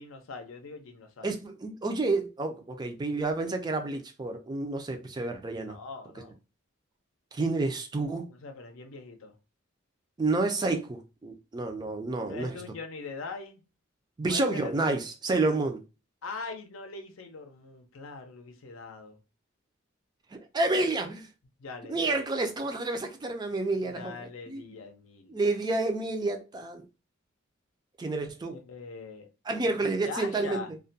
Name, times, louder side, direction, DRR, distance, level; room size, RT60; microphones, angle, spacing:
voice 1, 0.0-1.3 5.7-6.4 8.3-9.3 12.2-13.6 14.3-14.7 16.2-19.2 21.6-22.1 23.9-25.6 28.4-29.3 29.7-30.7, left 4 dB, 75° left, 0.5 m, -42 dB
voice 2, 1.2-5.8 7.3-8.3 10.2-12.6 14.2-15.8 20.3-21.3 21.9-24.2 24.5-24.6 25.3-26.8 28.0-28.6 29.5-30.6, right 3 dB, 20° right, 0.3 m, -29 dB
2.3 x 2.1 x 2.6 m
head